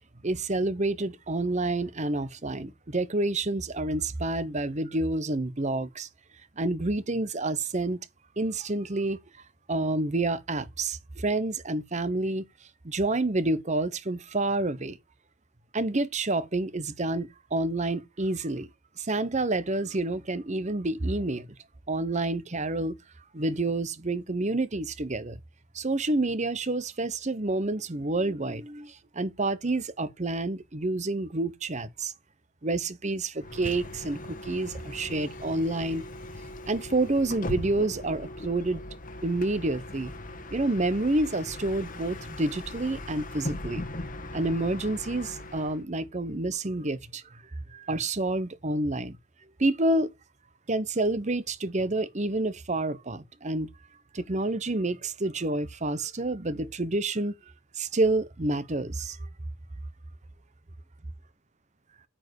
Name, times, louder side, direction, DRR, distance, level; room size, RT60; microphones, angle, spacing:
voice 1, 0.2-6.1 6.6-8.0 8.4-9.2 9.7-12.4 12.8-15.0 15.7-18.7 19.0-21.5 21.9-23.0 23.3-25.4 25.7-32.1 32.6-36.0 36.7-38.8 39.2-40.1 40.5-43.9 44.3-47.4 47.7-49.2 49.6-50.1 50.7-53.7 54.1-57.3 57.8-59.2, right 2 dB, 30° right, 0.9 m, -28 dB
Bus, 33.4-45.8, left 1 dB, 40° left, 1.4 m, -39 dB
8.9 x 5.0 x 6.3 m
head